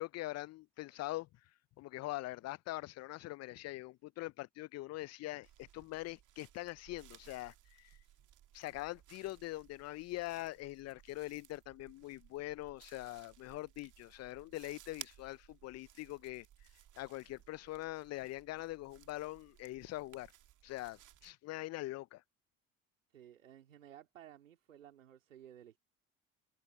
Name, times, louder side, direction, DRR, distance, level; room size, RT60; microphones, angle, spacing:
voice 1, 0.0-8.0 8.5-20.3 20.6-22.2, left 18 dB, 45° left, 0.4 m, -43 dB
sound 1, 5.4-21.3, right 12 dB, 50° right, 1.8 m, -59 dB
voice 2, 23.1-25.8, right 11 dB, 90° right, 2.7 m, -56 dB
open air
hypercardioid pair, 60°, 38 cm